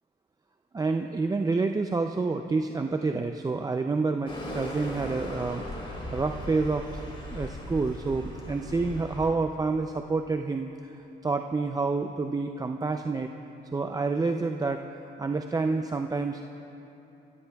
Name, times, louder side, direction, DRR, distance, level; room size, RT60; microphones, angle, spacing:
voice 1, 0.7-7.0 7.3-11.0 11.2-13.3 13.7-14.8 15.2-16.4, right 3 dB, 20° right, 5 dB, 0.4 m, -28 dB
sound 1, 4.3-9.3, left 1 dB, 25° left, 3.4 m, -38 dB
24.0 x 14.0 x 2.3 m, 2.9 s
cardioid pair, 90°, 20 cm